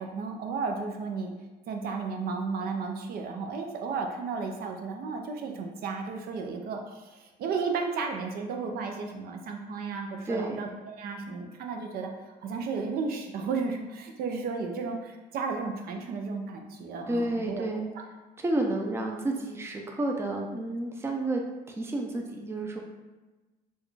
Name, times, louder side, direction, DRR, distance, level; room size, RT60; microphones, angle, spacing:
voice 1, 0.0-1.3 1.7-17.6 17.9-18.0, right 4 dB, 65° right, 3 dB, 0.5 m, -33 dB
voice 2, 10.3-10.7 17.1-17.9 18.4-21.4 21.8-22.8, right 2 dB, 15° right, 1 dB, 0.5 m, -30 dB
4.3 x 2.3 x 3.2 m, 1.2 s
cardioid pair, 110°, 17 cm